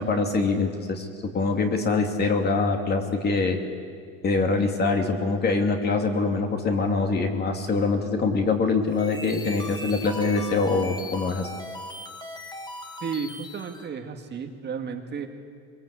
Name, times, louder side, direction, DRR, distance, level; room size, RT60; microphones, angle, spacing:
voice 1, 0.0-3.6 4.2-11.5, left 3 dB, 30° left, 4 dB, 2.8 m, -24 dB
sound 1, 8.8-13.9, left 1 dB, 15° left, 1.9 m, -39 dB
voice 2, 13.0-15.3, right 6 dB, 30° right, 4 dB, 2.0 m, -33 dB
23.0 x 22.5 x 8.4 m, 2.2 s
cardioid pair, 130°, 33 cm